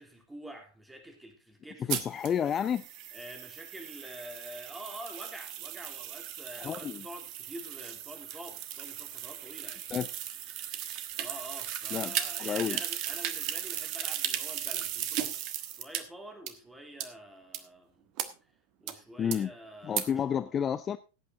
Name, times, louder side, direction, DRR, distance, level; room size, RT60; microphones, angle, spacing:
voice 1, 0.0-2.0 3.1-9.9 11.2-18.0 18.8-20.3, right 1 dB, 5° right, 3.5 m, -47 dB
voice 2, 1.9-2.8 6.6-7.1 9.9-10.1 11.9-12.1 12.4-12.8 19.2-19.5 19.8-21.0, left 8 dB, 25° left, 0.5 m, -30 dB
sound 1, 1.9-16.0 16.5-16.6 17.0-17.1 17.5-17.6 18.2-18.3 18.9-19.0 19.3-19.4 20.0-20.1, right 11 dB, 40° right, 1.3 m, -36 dB
17.5 x 8.6 x 3.7 m
figure-of-eight pair, 90°, 0 cm